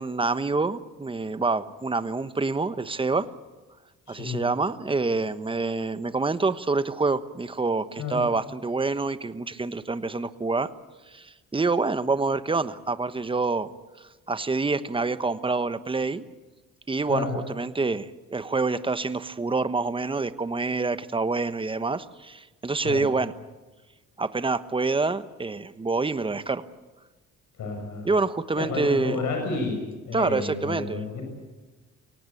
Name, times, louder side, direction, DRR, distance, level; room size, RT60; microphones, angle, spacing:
voice 1, 0.0-3.3 4.1-10.7 11.1-13.7 14.3-16.2 16.9-23.3 24.2-26.6 28.0-29.2 30.1-31.0, right 3 dB, 15° right, 12 dB, 1.1 m, -27 dB
voice 2, 4.1-4.4 8.0-8.2 17.1-17.4 22.8-23.1 27.6-28.1 28.5-29.8 30.1-31.2, left 3 dB, 75° left, 2 dB, 6.7 m, -30 dB
23.5 x 18.0 x 8.5 m, 1.2 s
cardioid pair, 90°, 30 cm